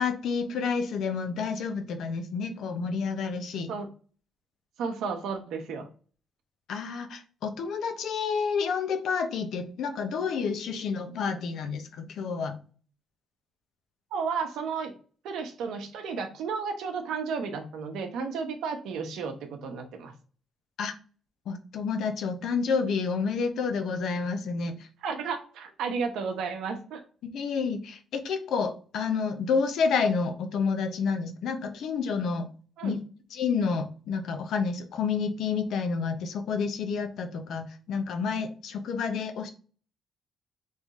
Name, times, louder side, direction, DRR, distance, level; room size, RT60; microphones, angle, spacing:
voice 1, 0.0-3.7 6.7-12.6 20.8-20.9 21.5-24.9 27.2-32.5 32.8-33.0 33.3-39.5, left 5 dB, 75° left, 8 dB, 0.7 m, -29 dB
voice 2, 4.8-5.9 14.1-14.9 15.2-20.1 25.0-27.0 32.8-33.0, right 5 dB, 85° right, 5 dB, 0.9 m, -33 dB
3.6 x 3.3 x 4.1 m, 0.40 s
cardioid pair, 90°, 0 cm